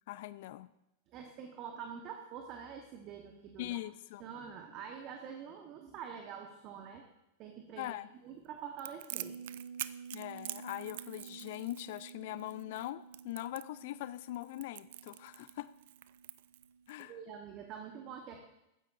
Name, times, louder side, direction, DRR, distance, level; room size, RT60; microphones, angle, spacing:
voice 1, 0.1-0.7 3.6-4.2 7.8-8.1 10.1-15.7 16.9-17.2, left 16 dB, 60° left, 16 dB, 0.3 m, -42 dB
voice 2, 1.1-3.8 4.2-7.0 7.4-7.9 8.2-9.4 17.0-18.4, right 7 dB, 45° right, 3 dB, 1.1 m, -46 dB
Crackle, 8.8-17.0, right 14 dB, 60° right, 0.3 m, -46 dB
sound 1, 9.1-17.4 17.7-17.8, right 6 dB, 80° right, 2.9 m, -52 dB
15.0 x 9.7 x 2.6 m, 0.90 s
hypercardioid pair, 95°, 0 cm